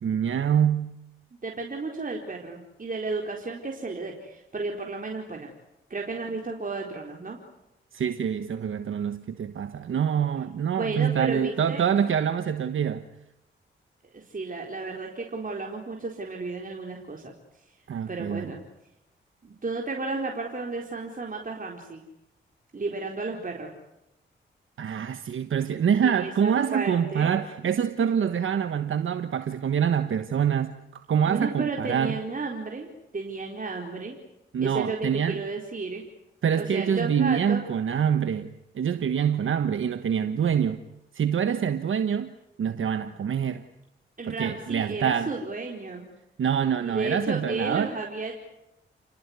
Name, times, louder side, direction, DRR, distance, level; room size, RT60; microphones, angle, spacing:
voice 1, 0.0-0.9 7.9-13.0 17.9-18.5 24.8-32.2 34.5-35.4 36.4-38.5 38.7-40.8 41.1-42.3 42.6-43.6 44.3-45.3 46.4-47.9, right 8 dB, 70° right, 1.3 m, -25 dB
voice 2, 1.4-5.5 5.9-7.4 10.8-11.8 14.1-17.3 18.1-18.6 19.4-22.0 22.7-23.7 26.0-27.3 31.3-32.9 33.1-34.2 34.6-36.0 36.5-37.6 44.2-46.1 46.8-48.3, right 3 dB, 40° right, 4.5 m, -33 dB
30.0 x 18.5 x 9.7 m
cardioid pair, 60°, 21 cm